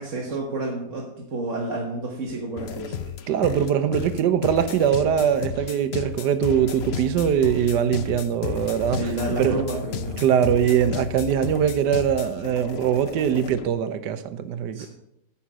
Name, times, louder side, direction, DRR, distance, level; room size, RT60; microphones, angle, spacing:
voice 1, 0.0-3.1 8.9-10.2 14.7-14.9, right 2 dB, 50° right, 1.7 m, -30 dB
sound 1, 2.6-13.7, left 9 dB, 60° left, 0.6 m, -33 dB
voice 2, 3.3-9.1 9.4-9.6 10.2-14.9, right 9 dB, 90° right, 1.4 m, -22 dB
9.9 x 5.8 x 6.2 m
omnidirectional pair, 1.8 m